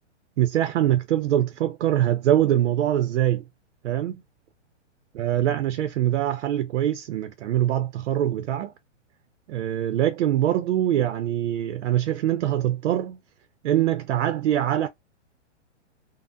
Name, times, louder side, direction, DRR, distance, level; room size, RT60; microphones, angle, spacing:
voice 1, 0.4-3.4 3.8-4.2 5.2-8.7 9.5-13.2 13.6-14.9, right 12 dB, 70° right, 0.5 m, -23 dB
3.3 x 2.0 x 2.5 m
hypercardioid pair, 135°, 36 cm